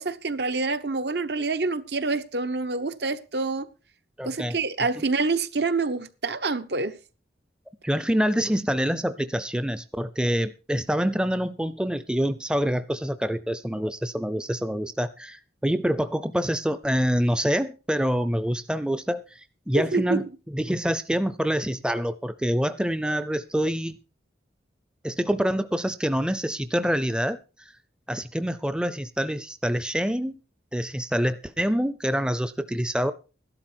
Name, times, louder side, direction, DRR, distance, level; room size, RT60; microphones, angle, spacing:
voice 1, 0.0-3.7 4.2-7.0 19.7-20.2, right 3 dB, 65° right, 1.1 m, -27 dB
voice 2, 4.2-4.6 7.8-24.0 25.0-27.7 28.1-30.4 30.7-33.1, equal, 5° right, 0.5 m, -26 dB
13.5 x 12.0 x 4.5 m
head